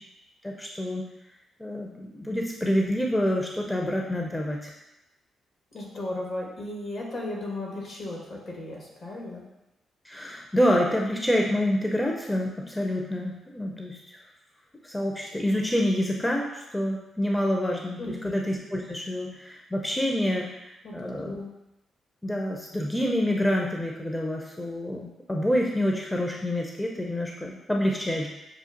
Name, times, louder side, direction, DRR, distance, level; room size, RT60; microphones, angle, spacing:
voice 1, 0.4-1.0 1.6-4.7 10.0-14.2 14.8-21.4 22.2-28.3, equal, 15° left, 0 dB, 0.6 m, -27 dB
voice 2, 5.7-9.4 18.0-18.4 20.8-21.5, left 1 dB, 60° left, -2 dB, 1.3 m, -35 dB
6.7 x 2.4 x 2.5 m, 0.93 s
hypercardioid pair, 45°, 0 cm